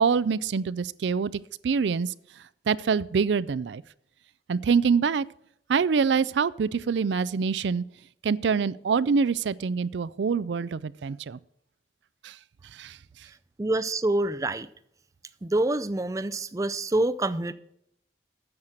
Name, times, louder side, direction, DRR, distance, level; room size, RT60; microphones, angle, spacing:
voice 1, 0.0-1.3 1.6-2.1 2.7-3.8 4.5-5.3 5.7-7.8 8.2-11.4 12.2-12.4 12.7-13.0, right 5 dB, 80° right, 18 dB, 0.4 m, -25 dB
voice 2, 13.6-14.7 15.4-17.5, right 2 dB, 20° right, 12 dB, 0.4 m, -26 dB
9.6 x 6.6 x 7.3 m, 0.72 s
head